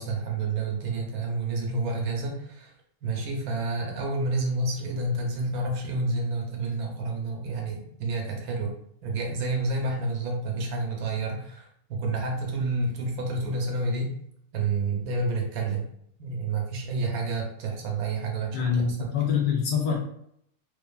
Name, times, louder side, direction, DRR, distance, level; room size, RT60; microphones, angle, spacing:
voice 1, 0.0-2.7 3.0-8.7 9.0-14.1 14.5-15.8 16.2-19.1, right 3 dB, 85° right, 1 dB, 1.1 m, -29 dB
voice 2, 18.5-20.0, left 7 dB, 80° left, -1 dB, 0.4 m, -25 dB
2.5 x 2.5 x 2.3 m, 0.70 s
omnidirectional pair, 1.6 m